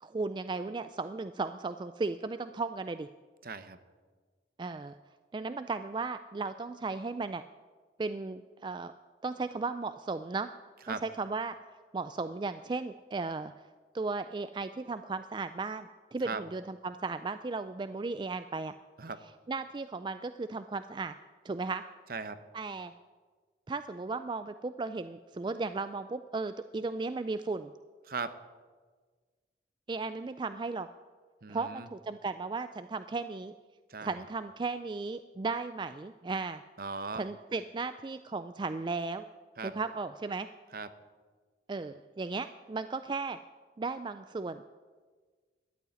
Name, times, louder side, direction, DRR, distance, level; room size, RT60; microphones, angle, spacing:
voice 1, 0.0-3.1 4.6-4.9 5.3-7.4 8.0-8.9 9.2-10.5 10.9-11.6 11.9-13.5 13.9-18.7 19.5-21.1 21.4-21.8 22.5-22.9 23.7-27.7 29.9-30.9 31.5-33.5 34.0-36.6 37.2-39.3 39.6-40.5 41.7-43.4 43.8-44.9, right 3 dB, 25° right, 11 dB, 0.3 m, -35 dB
voice 2, 3.4-3.8 10.9-11.0 16.2-16.4 19.0-19.2 22.1-22.4 28.1-28.3 31.4-31.9 33.9-34.2 36.8-37.3 39.6-39.7 40.7-40.9, right 4 dB, 55° right, 12 dB, 0.8 m, -38 dB
13.0 x 8.3 x 9.4 m, 1.5 s
head